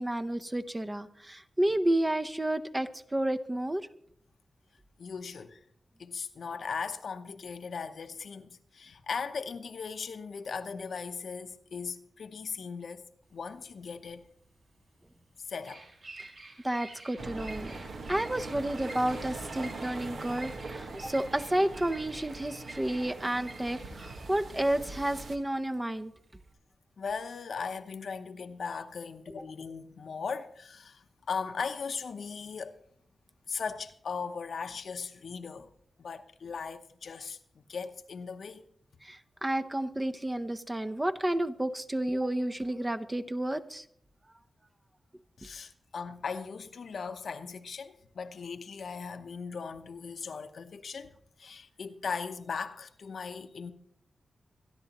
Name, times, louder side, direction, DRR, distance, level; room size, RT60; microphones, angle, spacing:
voice 1, 0.0-3.9 16.2-16.3 16.6-26.1 39.0-43.8, right 1 dB, 15° right, 0.7 m, -31 dB
voice 2, 5.0-5.6 6.0-13.0 13.3-14.2 15.5-15.8 27.0-32.8 33.5-35.7 36.0-38.6 45.4-51.1 51.4-53.7, left 5 dB, 75° left, 0.8 m, -38 dB
Bird vocalization bird call bird song, 13.3-26.5, right 2 dB, 60° right, 4.9 m, -50 dB
sound 1, 17.2-25.4, right 3 dB, 80° right, 1.4 m, -42 dB
25.5 x 11.0 x 3.0 m
wide cardioid pair, 110°, 0 cm